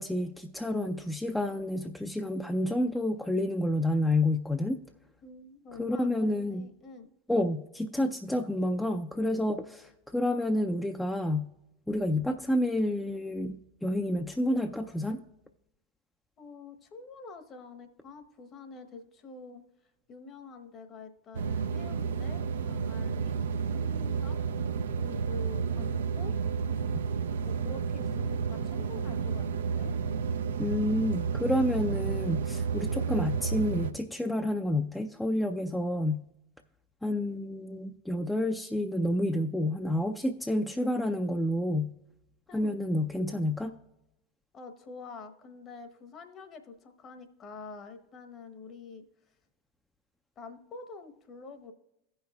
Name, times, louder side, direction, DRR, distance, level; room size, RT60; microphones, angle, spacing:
voice 1, 0.0-4.8 5.8-6.7 7.3-11.5 11.9-15.2 30.6-36.2 37.0-41.9 42.5-43.7, left 1 dB, 5° left, 4 dB, 0.4 m, -29 dB
voice 2, 5.2-7.1 16.4-19.6 20.1-23.4 23.7-24.4 25.0-26.4 27.4-29.9 42.5-42.7 44.5-49.0 50.4-51.7, left 4 dB, 35° left, 7 dB, 1.0 m, -46 dB
sound 1, 21.3-33.9, right 6 dB, 75° right, 0.4 m, -31 dB
16.5 x 5.6 x 2.3 m, 0.87 s
hypercardioid pair, 85°, 0 cm